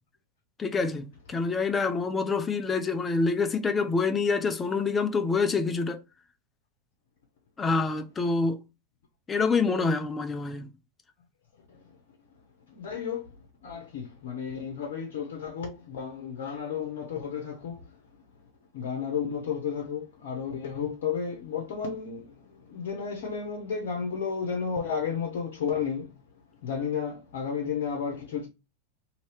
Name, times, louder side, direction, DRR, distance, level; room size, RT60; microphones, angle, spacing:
voice 1, 0.6-6.0 7.6-8.6 9.3-10.7, left 4 dB, 15° left, 0.5 m, -26 dB
voice 2, 12.7-13.3 13.6-17.9 18.7-26.2 26.6-28.5, left 6 dB, 55° left, 0.8 m, -32 dB
2.8 x 2.7 x 3.1 m
figure-of-eight pair, 90°, 0 cm